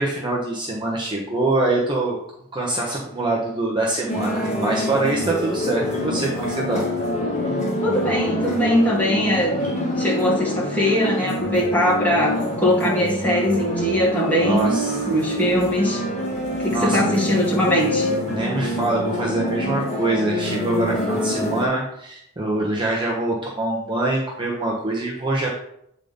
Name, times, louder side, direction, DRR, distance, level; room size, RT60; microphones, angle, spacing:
voice 1, 0.0-2.2 2.5-6.8 14.4-15.0 16.7-17.1 18.3-25.5, right 2 dB, 20° right, -3 dB, 1.0 m, -24 dB
sound 1, 4.1-21.6, equal, 30° left, 1.8 m, -25 dB
voice 2, 7.8-9.6 10.0-14.8 15.1-16.0 16.6-18.1, equal, 5° left, -5 dB, 1.7 m, -21 dB
8.4 x 3.9 x 5.2 m, 0.74 s
head